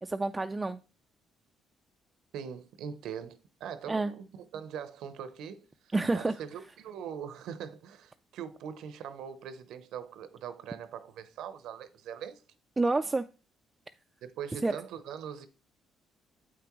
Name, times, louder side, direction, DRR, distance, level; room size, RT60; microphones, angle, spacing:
voice 1, 0.0-0.8 3.9-4.1 5.9-6.3 12.8-13.2 14.6-14.7, right 2 dB, 20° right, 0.3 m, -28 dB
voice 2, 2.3-12.4 14.2-15.5, right 8 dB, 80° right, 0.7 m, -42 dB
7.7 x 5.9 x 3.0 m
cardioid pair, 80°, 0 cm